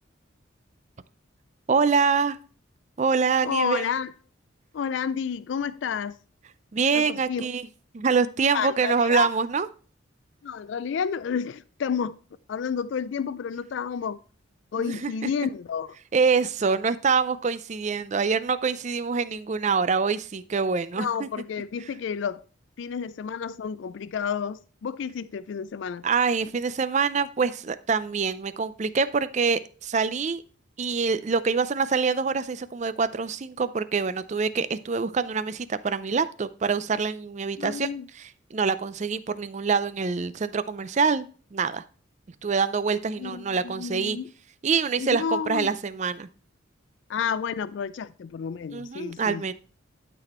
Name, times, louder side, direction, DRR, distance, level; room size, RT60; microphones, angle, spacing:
voice 1, 1.7-2.4 3.0-3.9 6.7-7.7 7.9-9.7 14.8-15.1 16.1-21.3 26.0-30.4 30.8-37.9 38.2-41.8 42.4-44.2 44.6-46.3 48.7-49.5, right 5 dB, 35° right, 0.4 m, -25 dB
voice 2, 3.4-4.1 4.7-6.2 6.9-7.5 8.5-9.3 10.4-12.2 12.5-14.2 14.7-16.0 21.0-22.4 22.8-26.0 37.6-38.1 43.2-44.3 45.0-45.7 47.1-49.4, left 7 dB, 65° left, 0.3 m, -30 dB
12.0 x 4.2 x 4.3 m
head